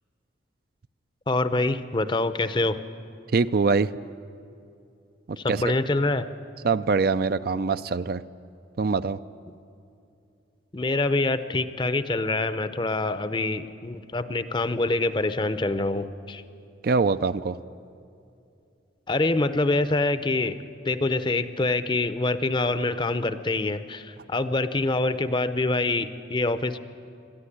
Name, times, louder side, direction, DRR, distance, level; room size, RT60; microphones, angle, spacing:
voice 1, 1.3-2.8 5.4-6.3 10.7-16.4 19.1-20.6 20.8-26.8, left 2 dB, 25° left, 12 dB, 0.6 m, -25 dB
voice 2, 3.3-3.9 5.3-5.7 6.6-8.2 8.8-9.2 16.8-17.6, right 4 dB, 50° right, 13 dB, 0.4 m, -23 dB
21.5 x 14.0 x 10.0 m, 2.6 s
head